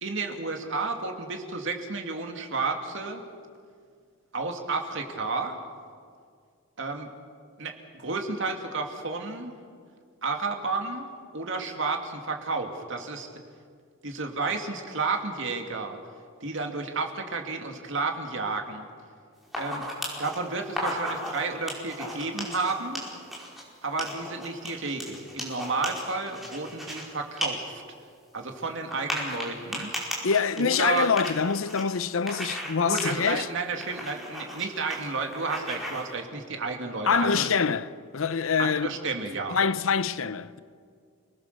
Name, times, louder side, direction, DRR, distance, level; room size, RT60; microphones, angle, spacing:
voice 1, 0.0-3.2 4.3-5.6 6.8-7.1 7.6-9.5 10.2-11.1 11.3-13.3 14.0-16.0 16.4-18.9 19.6-19.8 20.2-23.0 23.8-27.8 28.3-29.9 30.6-31.1 32.8-37.5 38.6-39.6, right 3 dB, 65° right, 2.5 m, -31 dB
sound 1, 19.4-20.4 20.7-21.4 21.7-23.6 24.0-27.0 27.4-27.5 27.8-27.9 28.9-31.8 32.3-32.7 33.0-33.3 33.8-34.6 34.9-35.0 35.3-36.0, equal, ahead, 5.1 m, -35 dB
voice 2, 30.2-33.5 37.1-38.9 39.5-40.6, left 6 dB, 75° left, 0.7 m, -25 dB
29.0 x 19.5 x 6.9 m
head